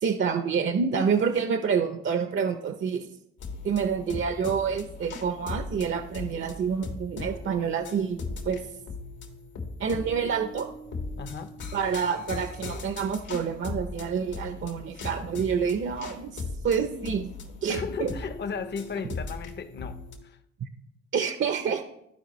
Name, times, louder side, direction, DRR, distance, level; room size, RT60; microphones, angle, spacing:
voice 1, 0.0-3.1 3.6-8.6 9.8-10.7 11.7-17.3 17.6-18.1 20.6-20.7 21.1-21.8, right 6 dB, 40° right, 0.6 m, -28 dB
sound 1, 3.4-20.1, left 3 dB, 80° left, 1.8 m, -39 dB
voice 2, 11.2-11.6 17.7-20.4, left 6 dB, 35° left, 0.7 m, -35 dB
14.0 x 4.9 x 3.1 m
cardioid pair, 90°, 30 cm